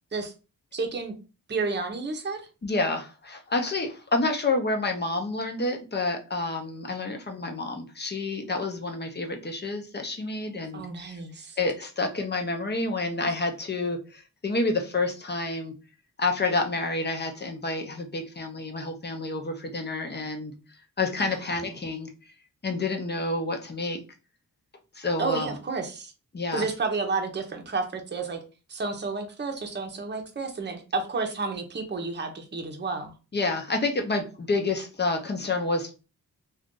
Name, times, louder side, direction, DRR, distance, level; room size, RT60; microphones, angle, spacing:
voice 1, 0.7-1.2 1.5-2.4 10.7-11.6 21.2-21.3 25.2-26.1 26.5-28.4 28.7-33.1, right 4 dB, 30° right, 0.8 m, -31 dB
voice 2, 2.6-11.2 11.6-15.7 16.2-20.5 21.0-22.1 22.6-24.0 24.9-25.6 26.3-26.7 33.3-35.9, left 3 dB, 30° left, 0.7 m, -29 dB
2.5 x 2.4 x 3.7 m
wide cardioid pair, 95°, 34 cm